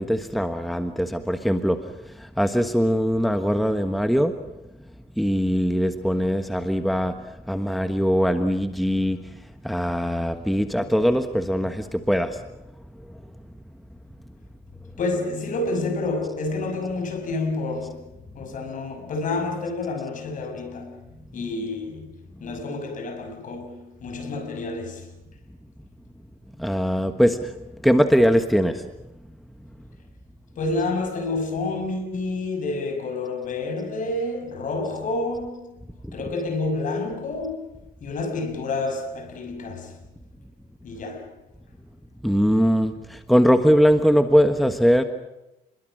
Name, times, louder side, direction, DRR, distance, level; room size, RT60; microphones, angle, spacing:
voice 1, 0.0-4.5 5.2-12.5 12.9-13.2 21.3-21.5 22.4-22.6 26.6-28.9 36.0-36.3 42.2-45.0, equal, ahead, 1.3 m, -22 dB
voice 2, 15.0-18.1 18.3-21.1 21.3-25.1 30.6-35.8 36.1-40.0 40.8-41.3, left 2 dB, 50° left, 6.0 m, -29 dB
29.0 x 22.0 x 6.3 m
cardioid pair, 110°, 17 cm